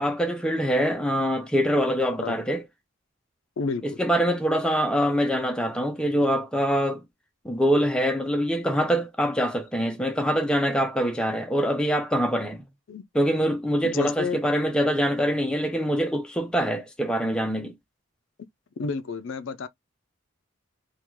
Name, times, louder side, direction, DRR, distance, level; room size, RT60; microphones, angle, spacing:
voice 1, 0.0-2.6 3.8-7.0 7.4-12.6 13.1-17.7, equal, 5° left, 0.5 m, -24 dB
voice 2, 3.6-4.0 12.9-13.0 13.8-14.4 18.8-19.7, left 4 dB, 65° left, 0.4 m, -30 dB
3.5 x 2.3 x 3.0 m
head